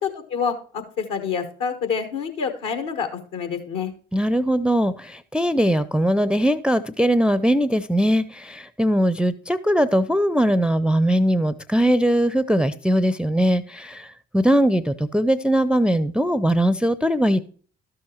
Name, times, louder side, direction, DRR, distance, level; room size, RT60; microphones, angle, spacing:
voice 1, 0.0-3.9, left 6 dB, 65° left, 7 dB, 1.4 m, -27 dB
voice 2, 4.1-14.1 14.3-17.4, equal, 5° right, 15 dB, 0.5 m, -20 dB
12.5 x 6.3 x 3.0 m, 0.43 s
figure-of-eight pair, 40°, 33 cm